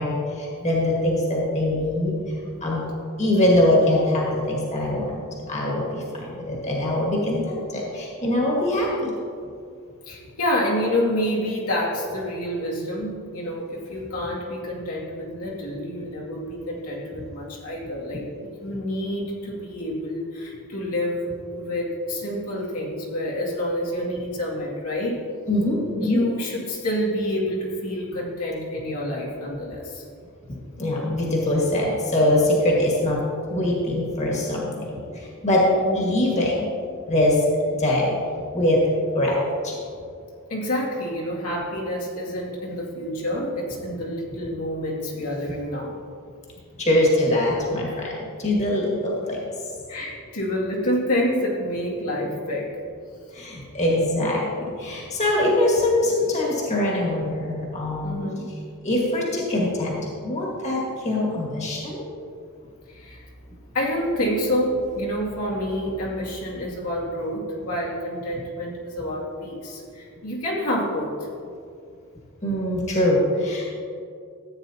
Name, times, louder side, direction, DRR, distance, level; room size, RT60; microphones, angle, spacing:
voice 1, 0.0-2.2 2.6-2.9 3.2-9.1 25.5-26.2 30.8-33.2 33.5-35.7 35.9-36.7 37.1-37.4 37.7-38.2 38.5-38.8 39.1-39.4 39.6-39.8 46.8-49.4 53.3-58.2 58.8-62.0 72.4-73.8, left 1 dB, 30° left, -4 dB, 1.8 m, -23 dB
voice 2, 10.1-18.2 18.6-25.2 25.9-30.0 35.8-36.0 40.5-46.0 49.9-52.8 58.0-58.5 62.9-63.2 63.7-71.2, equal, 85° left, -5 dB, 2.4 m, -28 dB
14.5 x 8.9 x 2.8 m, 2.4 s
head